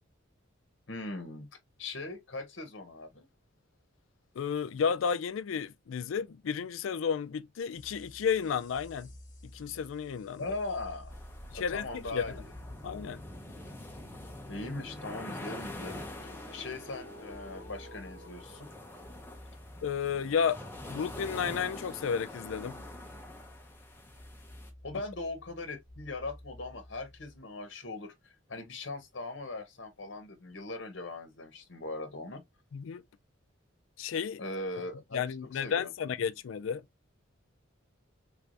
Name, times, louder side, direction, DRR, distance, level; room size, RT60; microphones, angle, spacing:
voice 1, 0.9-1.5 1.8-3.3 10.4-11.2 11.5-12.5 14.5-18.7 24.8-32.4 34.4-35.9, left 2 dB, 65° left, 0.9 m, -40 dB
voice 2, 4.4-9.1 9.5-10.4 11.5-11.9 12.1-12.2 12.8-13.2 19.8-20.6 20.9-22.8 32.7-33.0 34.0-34.4 35.1-36.8, left 7 dB, 85° left, 0.4 m, -32 dB
sound 1, 7.7-27.4, left 1 dB, 40° left, 1.1 m, -50 dB
sound 2, 11.1-24.7, left 1 dB, 10° left, 0.7 m, -46 dB
3.5 x 3.3 x 2.5 m
head